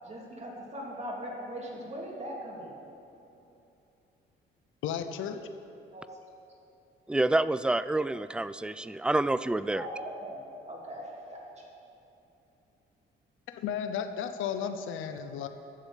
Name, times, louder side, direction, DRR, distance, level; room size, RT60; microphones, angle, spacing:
voice 1, 0.0-2.9 5.9-6.1 9.7-11.7, equal, 35° right, -3 dB, 3.3 m, -40 dB
voice 2, 4.8-5.4 13.5-15.5, left 8 dB, 85° left, 9 dB, 0.7 m, -34 dB
voice 3, 7.1-9.9, right 2 dB, 5° right, 15 dB, 0.3 m, -28 dB
12.0 x 7.1 x 8.3 m, 2.8 s
cardioid pair, 90°, 20 cm